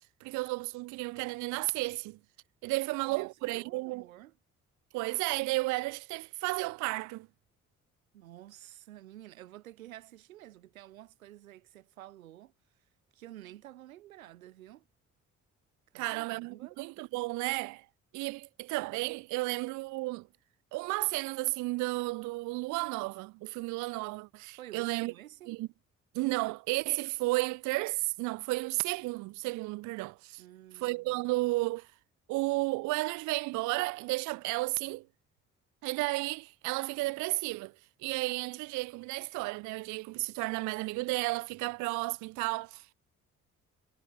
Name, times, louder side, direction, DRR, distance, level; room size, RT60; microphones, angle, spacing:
voice 1, 0.2-2.2 2.6-4.0 4.9-7.3 15.9-17.9 18.1-20.3 20.7-25.1 25.5-25.7 26.1-30.4 30.7-31.9 32.3-35.1 35.8-37.7 38.0-42.9, right 23 dB, 50° right, 0.4 m, -33 dB
voice 2, 2.9-4.3 8.1-12.5 13.1-14.8 15.9-16.8 24.6-25.5 30.4-31.2, right 14 dB, 80° right, 0.8 m, -51 dB
figure-of-eight pair, 40°, 41 cm